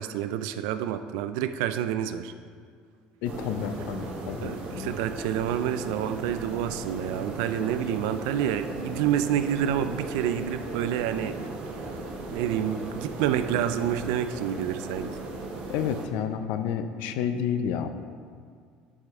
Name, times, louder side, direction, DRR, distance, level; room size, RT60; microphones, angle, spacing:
voice 1, 0.0-2.3 4.4-11.4 12.3-15.2, right 10 dB, 90° right, 11 dB, 0.4 m, -28 dB
voice 2, 3.2-4.9 15.7-17.9, left 8 dB, 75° left, 9 dB, 0.5 m, -30 dB
sound 1, 3.2-16.1, right 2 dB, 55° right, 1.2 m, -37 dB
11.0 x 4.9 x 3.6 m, 2.1 s
cardioid pair, 125°, 3 cm